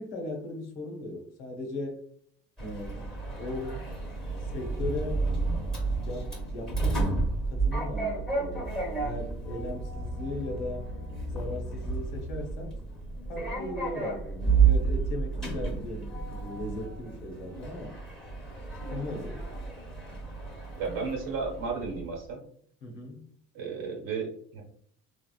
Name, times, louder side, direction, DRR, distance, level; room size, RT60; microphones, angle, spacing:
voice 1, 0.0-2.0 2.6-3.8 4.4-5.4 6.0-7.3 7.5-10.9 11.3-12.7 13.3-18.0 18.9-19.4 22.8-23.3, left 2 dB, 90° left, 1 dB, 0.9 m, -38 dB
Sliding door, 2.6-22.2, right 4 dB, ahead, 1.0 m, -31 dB
voice 2, 20.8-22.4 23.5-24.6, right 4 dB, 75° right, 0 dB, 1.1 m, -33 dB
3.2 x 2.3 x 2.3 m, 0.62 s
supercardioid pair, 80°, 33 cm